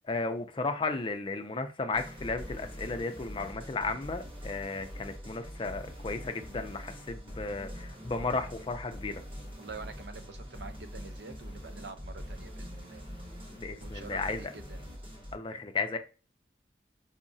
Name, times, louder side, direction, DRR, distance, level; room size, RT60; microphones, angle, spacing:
voice 1, 0.1-9.2 13.5-14.5 15.3-16.0, left 3 dB, 30° left, 0.4 m, -34 dB
sound 1, 1.9-15.3, equal, 30° right, 1.0 m, -44 dB
voice 2, 9.6-13.0 13.8-14.8, right 4 dB, 70° right, 0.5 m, -46 dB
4.7 x 2.0 x 2.6 m
head